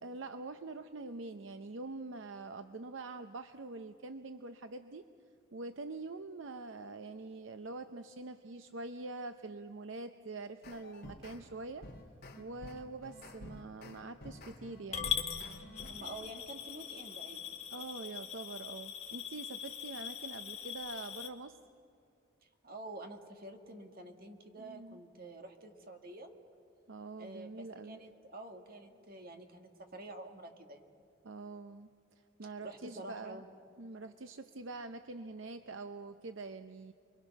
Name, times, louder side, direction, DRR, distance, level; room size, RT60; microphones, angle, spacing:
voice 1, 0.0-5.0 5.5-11.9 12.4-15.1 17.7-21.6 24.6-25.0 26.9-28.0 31.2-31.9 32.2-33.4 33.8-36.9, right 3 dB, 70° right, 9 dB, 0.7 m, -45 dB
sound 1, 10.6-11.4 11.8-16.2, left 1 dB, 50° left, 2.9 m, -50 dB
Coin (dropping) / Glass, 14.9-21.3, left 8 dB, 35° left, 1.7 m, -41 dB
voice 2, 15.9-17.4 22.6-26.3 27.2-30.8 32.4-33.5, right 2 dB, 50° right, 4 dB, 1.9 m, -48 dB
29.5 x 22.5 x 6.0 m, 2.5 s
head